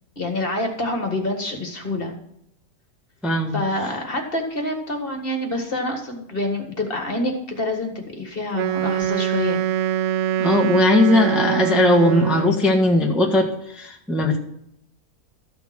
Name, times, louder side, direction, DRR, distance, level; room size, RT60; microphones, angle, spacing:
voice 1, 0.2-2.1 3.5-9.6, left 1 dB, 35° left, 3 dB, 1.8 m, -27 dB
voice 2, 3.2-3.6 10.4-13.5 13.7-14.4, left 2 dB, ahead, 1 dB, 1.2 m, -18 dB
Wind instrument woodwind instrument, 8.5-12.7, right 10 dB, 70° right, 0.6 m, -23 dB
13.5 x 6.9 x 6.2 m, 0.75 s
omnidirectional pair, 1.7 m